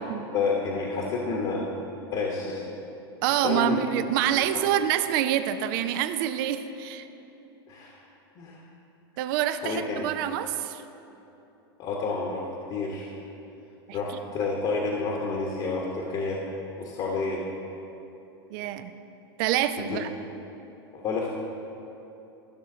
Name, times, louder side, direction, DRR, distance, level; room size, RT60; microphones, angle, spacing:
voice 1, 0.3-1.7 2.1-2.6 3.3-3.8 4.5-4.6 7.7-8.0 8.4-8.6 9.6-10.1 11.8-12.4 12.7-13.1 13.9-16.4 16.8-17.4 19.8-20.0 20.9-21.4, left 4 dB, 45° left, -1 dB, 1.2 m, -29 dB
voice 2, 3.2-7.1 9.2-10.8 18.5-18.9 19.4-20.1, right 11 dB, 60° right, 11 dB, 0.5 m, -26 dB
14.0 x 6.2 x 3.9 m, 3.0 s
hypercardioid pair, 115°, 13 cm